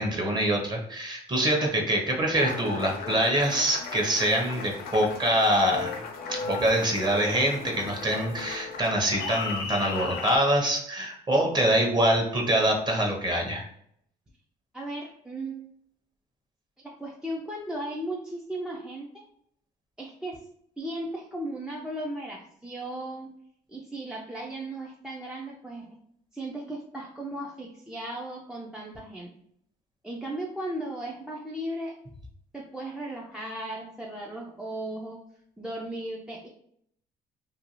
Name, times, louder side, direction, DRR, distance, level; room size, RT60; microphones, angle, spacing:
voice 1, 0.0-5.9 6.3-13.7, right 1 dB, 25° right, 1 dB, 0.7 m, -25 dB
Applause, 2.4-10.4, left 4 dB, 65° left, 0.5 m, -36 dB
voice 2, 14.7-15.7 16.8-19.1 20.0-20.4 20.8-23.3 23.7-26.0 26.3-29.4 30.0-32.0 32.5-35.2 35.6-36.5, right 1 dB, 5° right, -2 dB, 0.3 m, -36 dB
2.5 x 2.3 x 2.9 m, 0.68 s
cardioid pair, 110°, 17 cm